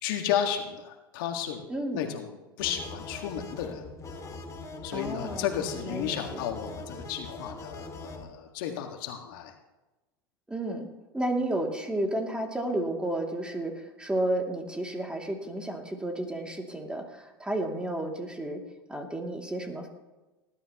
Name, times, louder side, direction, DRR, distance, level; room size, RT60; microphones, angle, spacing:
voice 1, 0.0-1.7 1.9-3.9 4.8-9.6, left 9 dB, 65° left, 4 dB, 1.8 m, -33 dB
voice 2, 1.7-2.0 4.9-5.5 5.7-6.4 10.5-10.9 11.1-18.6 18.9-19.9, right 1 dB, 10° right, 2 dB, 2.6 m, -32 dB
sound 1, 2.6-8.3, left 3 dB, 25° left, 2.3 m, -42 dB
19.5 x 12.0 x 3.0 m, 1.1 s
hypercardioid pair, 90°, 12 cm